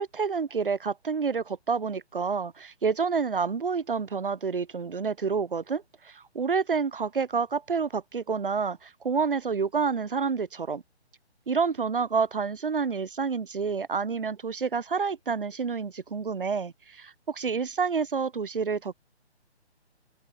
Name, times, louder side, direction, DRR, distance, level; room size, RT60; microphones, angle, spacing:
voice 1, 0.0-10.8 11.5-18.9, right 5 dB, 50° right, 1.0 m, -28 dB
open air
figure-of-eight pair, 145°, 34 cm